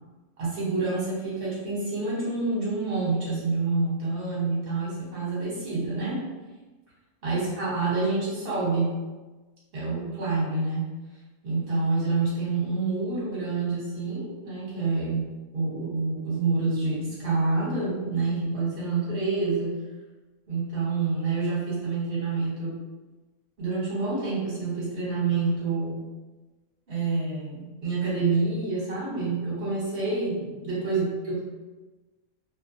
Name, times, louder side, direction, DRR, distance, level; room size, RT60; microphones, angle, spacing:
voice 1, 0.4-6.2 7.2-9.0 9.7-10.9 11.4-15.3 15.5-19.8 20.5-22.8 23.6-26.1 26.9-31.4, right 3 dB, 45° right, -8 dB, 1.2 m, -27 dB
2.7 x 2.1 x 2.6 m, 1.2 s
omnidirectional pair, 1.5 m